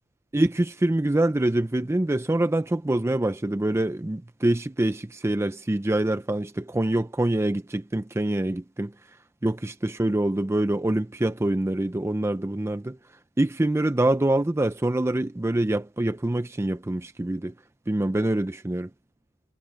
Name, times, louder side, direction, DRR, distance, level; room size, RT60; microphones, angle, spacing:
voice 1, 0.3-8.9 9.4-13.0 13.4-17.5 17.9-18.9, right 1 dB, 10° right, 0.4 m, -25 dB
head